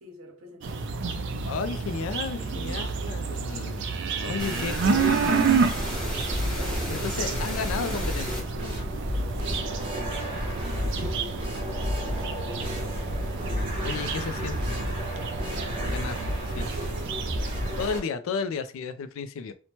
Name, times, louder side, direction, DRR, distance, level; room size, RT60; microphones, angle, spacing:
voice 1, 0.0-0.9 2.4-3.2 3.5-3.8 4.2-4.5 6.2-7.6 9.3-11.8 12.4-13.8 15.5-16.0 16.6-18.0 18.3-18.5, right 1 dB, 75° right, 0.8 m, -45 dB
sound 1, 0.6-17.9, right 5 dB, 60° right, 0.4 m, -30 dB
voice 2, 1.4-3.9 4.2-5.6 6.9-8.8 13.8-14.8 15.9-16.1 16.5-16.7 17.8-19.5, left 5 dB, 70° left, 0.3 m, -33 dB
sound 2, 4.4-8.4, equal, 5° left, 1.0 m, -33 dB
sound 3, 5.7-18.0, left 1 dB, 25° right, 0.7 m, -32 dB
2.8 x 2.1 x 2.9 m
head